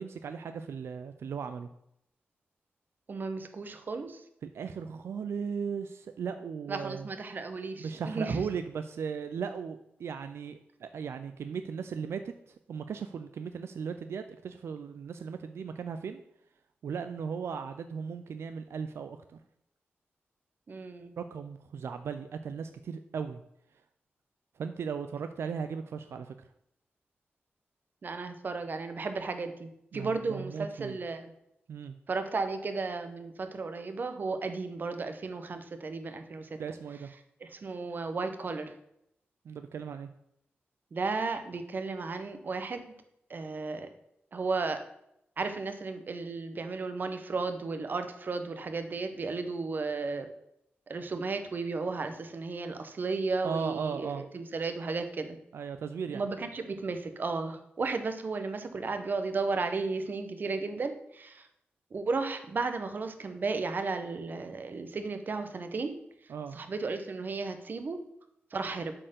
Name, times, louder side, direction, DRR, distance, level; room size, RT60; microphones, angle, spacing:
voice 1, 0.0-1.7 4.5-7.1 7.8-12.3 12.7-16.2 16.8-19.4 21.2-23.4 24.6-26.3 29.9-31.0 31.7-32.0 36.6-37.1 39.5-40.1 53.4-54.2 55.5-56.2 66.3-66.6, right 6 dB, 85° right, 9 dB, 0.4 m, -37 dB
voice 2, 3.1-4.2 6.7-8.4 20.7-21.2 28.0-31.3 32.1-36.6 37.4-38.7 40.9-42.9 43.3-43.9 44.3-44.8 45.4-50.3 50.9-55.4 56.1-61.5 61.9-65.9 66.5-68.0 68.5-68.9, right 4 dB, 50° right, 8 dB, 0.9 m, -34 dB
7.4 x 4.5 x 6.6 m, 0.77 s
wide cardioid pair, 115°, 4 cm